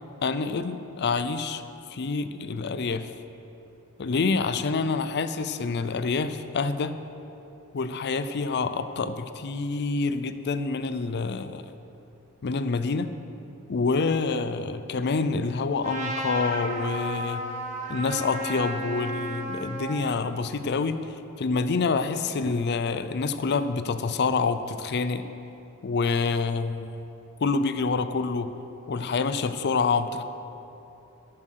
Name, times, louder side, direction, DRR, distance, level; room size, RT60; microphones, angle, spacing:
voice 1, 0.2-1.6 1.9-3.1 4.0-7.0 7.7-11.6 12.4-13.1 13.7-17.4 17.9-25.2 25.8-27.0 27.4-28.5 28.9-30.2, left 4 dB, 50° left, 11 dB, 0.5 m, -27 dB
Trumpet, 15.8-20.1, right 1 dB, 35° right, 1.3 m, -33 dB
10.5 x 7.4 x 6.5 m, 3.0 s
head